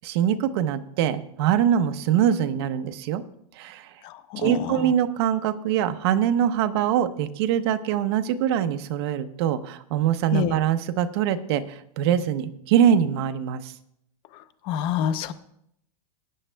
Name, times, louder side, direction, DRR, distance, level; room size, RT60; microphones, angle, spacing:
voice 1, 0.0-3.2 3.6-3.9 4.4-13.7, right 9 dB, 40° right, 10 dB, 0.7 m, -23 dB
voice 2, 4.0-4.9 10.3-10.6 14.6-15.3, left 10 dB, 25° left, 11 dB, 0.5 m, -27 dB
18.5 x 9.1 x 2.2 m, 0.74 s
supercardioid pair, 165°, 21 cm